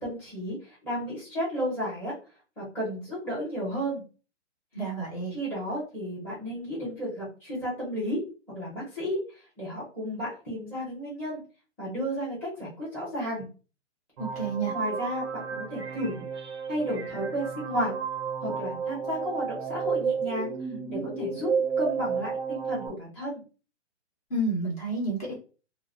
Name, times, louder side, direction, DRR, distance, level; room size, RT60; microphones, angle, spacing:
voice 1, 0.0-2.2 2.6-4.0 5.3-11.4 11.8-13.5 14.7-16.3 16.7-17.9 18.4-20.5 20.9-21.5 21.8-23.4, equal, 5° left, -8 dB, 0.8 m, -33 dB
voice 2, 4.7-5.3 14.2-14.7 24.3-25.3, right 2 dB, 30° left, -3 dB, 0.9 m, -30 dB
sound 1, 14.2-22.9, right 6 dB, 25° right, 0.5 m, -32 dB
2.3 x 2.1 x 2.5 m, 0.35 s
hypercardioid pair, 150°, 36 cm